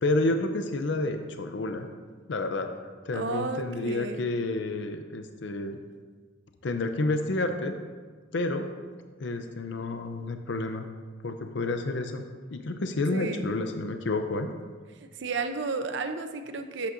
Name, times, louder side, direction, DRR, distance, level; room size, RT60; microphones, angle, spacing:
voice 1, 0.0-1.9 2.3-2.8 3.0-5.8 6.6-7.8 8.3-8.7 9.2-10.9 11.2-12.2 12.5-14.5, left 2 dB, 65° left, 7 dB, 0.5 m, -29 dB
voice 2, 3.1-4.2 13.1-13.5 15.1-16.9, right 3 dB, 65° right, 7 dB, 0.6 m, -32 dB
11.5 x 8.2 x 2.6 m, 1.5 s
head